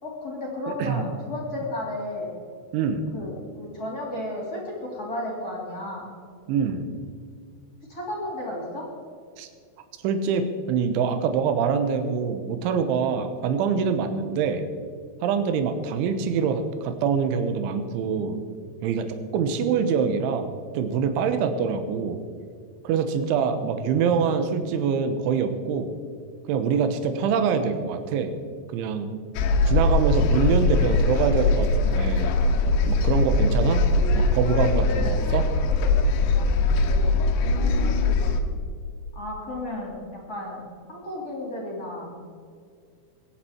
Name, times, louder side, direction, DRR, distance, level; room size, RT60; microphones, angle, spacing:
voice 1, 0.0-2.3 3.1-6.1 7.9-8.9 37.3-38.1 39.1-42.2, left 1 dB, 25° left, -3 dB, 2.7 m, -33 dB
voice 2, 2.7-3.0 6.5-6.9 9.4-9.5 10.0-14.6 15.2-18.4 18.8-20.5 20.8-22.2 22.9-25.9 26.5-28.3 28.7-29.2 29.7-32.3 32.9-33.8 34.2-35.5, right 6 dB, 75° right, 8 dB, 3.4 m, -25 dB
sound 1, 29.4-38.4, left 3 dB, 85° left, 3.5 m, -21 dB
22.5 x 10.5 x 4.5 m, 2.2 s
omnidirectional pair, 5.9 m